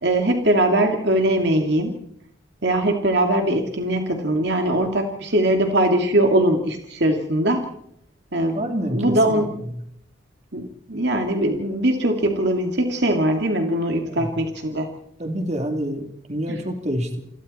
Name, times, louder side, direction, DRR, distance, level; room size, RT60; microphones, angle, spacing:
voice 1, 0.0-1.9 2.6-7.6 8.3-8.6 8.9-9.5 10.5-14.9 16.5-16.6, right 1 dB, 60° right, 4 dB, 2.4 m, -21 dB
voice 2, 8.5-9.8 14.0-14.3 15.2-17.2, equal, 35° right, 4 dB, 3.1 m, -28 dB
29.0 x 22.0 x 4.3 m, 0.73 s
head